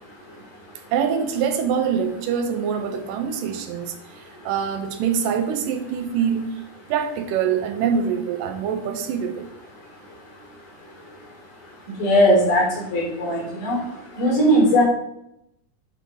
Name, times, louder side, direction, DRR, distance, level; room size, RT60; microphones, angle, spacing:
voice 1, 0.9-3.9 4.4-6.5 6.9-9.5, right 7 dB, 90° right, 2.5 m, -24 dB
voice 2, 12.0-12.6 12.9-13.8 14.2-14.8, equal, 85° left, 5.1 m, -18 dB
10.5 x 4.0 x 4.9 m
omnidirectional pair, 3.8 m